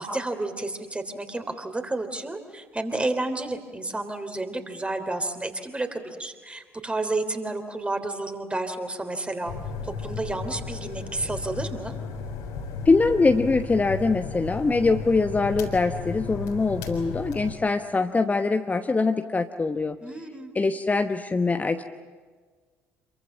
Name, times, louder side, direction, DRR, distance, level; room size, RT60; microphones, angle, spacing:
voice 1, 0.0-9.5 9.8-11.9 20.0-20.5, right 2 dB, 15° right, 7 dB, 3.4 m, -31 dB
sound 1, 9.5-17.5, left 5 dB, 70° left, 3.9 m, -35 dB
voice 2, 12.8-20.0 20.5-21.8, left 3 dB, 20° left, 7 dB, 1.1 m, -23 dB
27.5 x 23.5 x 7.6 m, 1.5 s
figure-of-eight pair, 50°, 7 cm